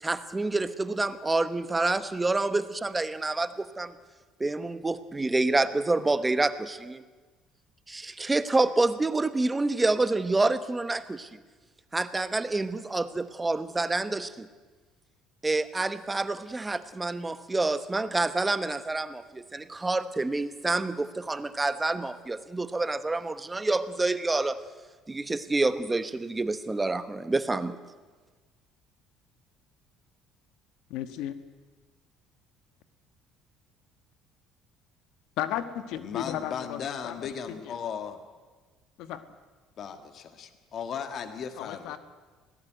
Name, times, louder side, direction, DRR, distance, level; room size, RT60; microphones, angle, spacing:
voice 1, 0.0-3.9 4.4-7.0 7.9-11.4 11.9-14.5 15.4-24.6 25.1-27.8, right 2 dB, 10° right, 13 dB, 0.9 m, -28 dB
voice 2, 30.9-31.4 35.4-37.8 39.0-39.2 41.6-42.0, left 11 dB, 70° left, 11 dB, 1.4 m, -35 dB
voice 3, 36.0-38.2 39.8-42.0, left 7 dB, 40° left, 9 dB, 1.7 m, -36 dB
24.5 x 17.5 x 9.1 m, 1.4 s
cardioid pair, 155°, 0 cm